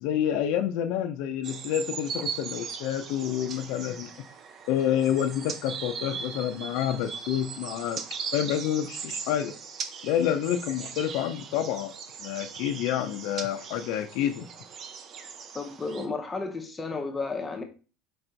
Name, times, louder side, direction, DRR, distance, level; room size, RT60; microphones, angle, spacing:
voice 1, 0.0-4.1 4.7-8.0 8.3-9.5 10.0-11.9 12.2-14.5, left 10 dB, 65° left, 0.4 m, -28 dB
sound 1, 1.4-16.1, right 6 dB, 40° right, 0.5 m, -39 dB
voice 2, 15.5-17.6, left 3 dB, 15° left, 0.7 m, -32 dB
4.6 x 2.5 x 4.3 m
supercardioid pair, 130°, 0 cm